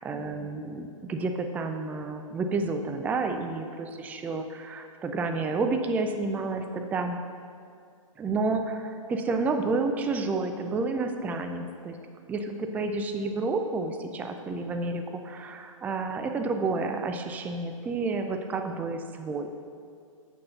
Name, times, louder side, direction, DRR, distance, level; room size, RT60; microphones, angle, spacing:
voice 1, 0.0-7.2 8.2-12.0 12.3-19.6, right 3 dB, 10° right, 6 dB, 0.4 m, -30 dB
7.2 x 6.7 x 5.5 m, 2.3 s
figure-of-eight pair, 120°, 18 cm